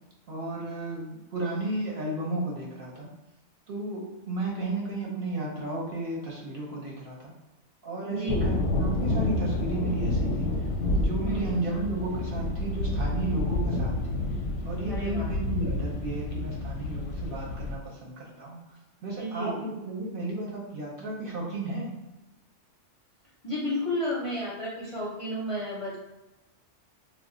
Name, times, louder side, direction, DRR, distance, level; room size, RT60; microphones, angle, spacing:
voice 1, 0.3-3.1 3.7-7.3 7.8-10.5 10.9-14.2 14.6-18.6 19.0-21.9, right 2 dB, 55° right, -3 dB, 0.7 m, -33 dB
voice 2, 8.1-8.5 11.2-11.5 14.9-15.3 19.0-19.7 23.4-26.0, equal, 40° left, -7 dB, 0.5 m, -32 dB
sound 1, 8.3-17.8, left 2 dB, 85° left, 0.9 m, -29 dB
2.3 x 2.1 x 3.7 m, 1.0 s
omnidirectional pair, 1.2 m